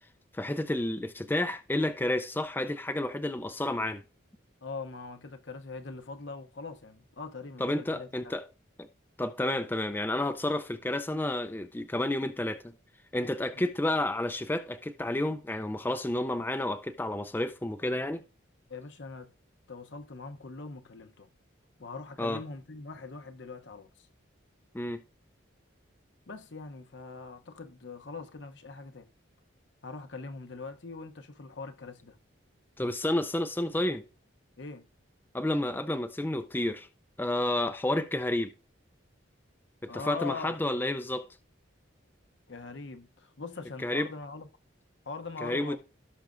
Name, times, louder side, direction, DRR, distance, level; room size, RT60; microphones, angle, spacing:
voice 1, 0.3-4.0 7.6-8.4 8.8-8.9 9.2-12.7 13.1-18.2 22.2-22.4 24.7-25.0 32.8-34.0 35.3-36.9 37.2-38.5 39.8-41.3 43.8-44.1 45.4-45.8, left 1 dB, 10° left, 0.4 m, -30 dB
voice 2, 4.6-8.3 13.5-13.6 18.7-19.3 19.7-21.3 21.8-24.1 26.3-29.1 29.8-32.2 34.6-34.9 39.9-40.6 42.5-44.5 45.1-45.8, left 4 dB, 65° left, 0.8 m, -42 dB
17.0 x 5.9 x 2.5 m
head